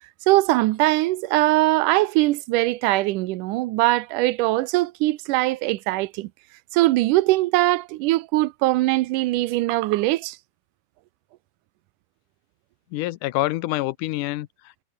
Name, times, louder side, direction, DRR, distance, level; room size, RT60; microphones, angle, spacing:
voice 1, 0.3-6.3 6.7-10.4, right 18 dB, 80° right, 2.3 m, -21 dB
voice 2, 12.9-14.8, left 17 dB, 80° left, 2.2 m, -27 dB
omnidirectional pair, 3.7 m